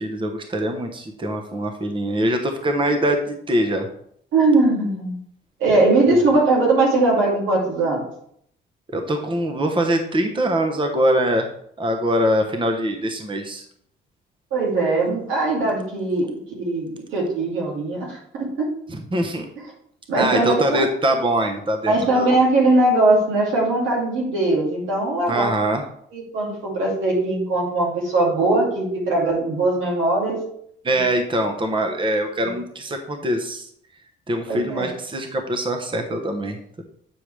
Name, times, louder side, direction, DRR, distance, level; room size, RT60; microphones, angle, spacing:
voice 1, 0.0-3.9 6.1-6.2 8.9-11.5 11.8-13.6 18.9-19.5 20.2-22.3 25.3-25.8 30.8-33.7 34.3-36.8, right 1 dB, 25° right, 5 dB, 0.9 m, -23 dB
voice 2, 4.3-5.1 5.6-8.0 14.5-18.7 20.1-20.9 21.9-25.5 26.1-30.4 32.4-32.5 34.5-34.9, right 2 dB, 85° right, -2 dB, 2.5 m, -20 dB
8.8 x 4.8 x 3.3 m, 0.67 s
cardioid pair, 90°, 20 cm